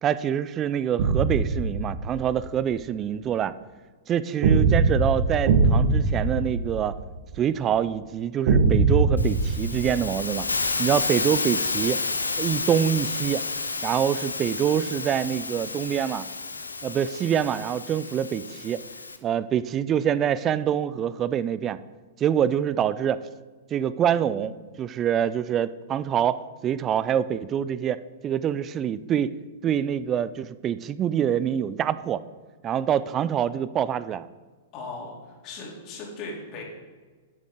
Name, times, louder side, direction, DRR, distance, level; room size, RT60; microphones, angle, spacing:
voice 1, 0.0-3.5 4.1-7.0 7.4-10.5 10.8-12.0 12.4-13.4 13.8-16.2 16.8-18.8 19.2-21.8 22.2-23.2 23.7-26.4 26.6-29.3 29.6-32.2 32.6-34.3, right 9 dB, 30° right, 16 dB, 0.4 m, -25 dB
sound 1, 1.0-2.4 4.4-7.4 8.5-10.6, right 4 dB, 55° right, 1.5 m, -22 dB
Hiss, 9.2-19.2, left 3 dB, 90° left, 0.8 m, -30 dB
voice 2, 34.7-36.6, left 3 dB, 40° left, -2 dB, 3.4 m, -38 dB
11.0 x 8.9 x 3.8 m, 1.4 s
hypercardioid pair, 110°, 0 cm